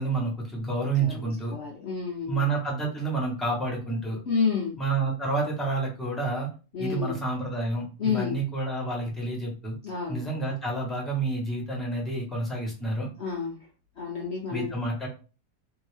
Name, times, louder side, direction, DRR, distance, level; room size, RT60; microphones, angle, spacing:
voice 1, 0.0-1.6 2.3-4.2 4.8-6.5 6.8-9.7 10.1-13.1 14.5-15.1, right 3 dB, ahead, -3 dB, 0.9 m, -29 dB
voice 2, 1.0-2.4 4.3-4.8 6.7-7.2 8.0-8.4 9.8-10.3 13.2-13.6 14.0-14.7, left 6 dB, 55° left, -2 dB, 0.8 m, -30 dB
2.8 x 2.6 x 3.3 m, 0.34 s
omnidirectional pair, 1.7 m